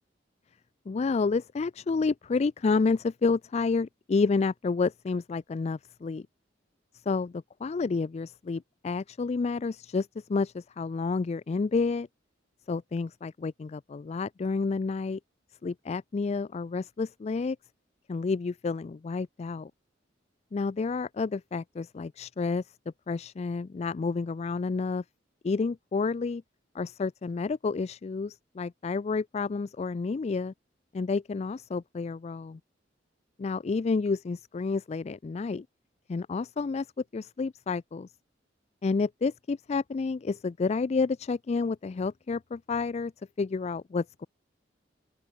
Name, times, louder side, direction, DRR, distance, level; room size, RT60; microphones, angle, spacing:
voice 1, 0.9-6.3 7.1-12.1 12.7-15.2 15.6-17.6 18.1-19.7 20.5-22.6 23.1-25.0 25.4-26.4 26.7-30.5 30.9-32.6 33.4-35.7 36.1-36.9 37.1-38.1 38.8-43.1 43.4-44.3, left 4 dB, 35° left, 0.3 m, -30 dB
open air
head